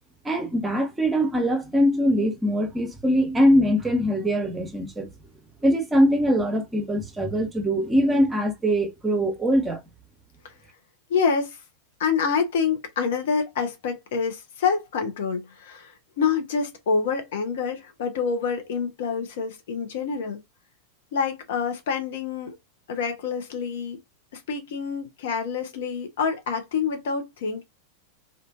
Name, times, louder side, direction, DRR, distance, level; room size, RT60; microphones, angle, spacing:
voice 1, 0.2-5.1 5.6-9.8, equal, 10° right, 0.9 m, -22 dB
voice 2, 11.1-11.6 12.0-20.4 21.1-22.6 22.9-24.0 24.3-27.6, left 5 dB, 55° left, 0.7 m, -27 dB
2.5 x 2.5 x 2.3 m
figure-of-eight pair, 90°, 0 cm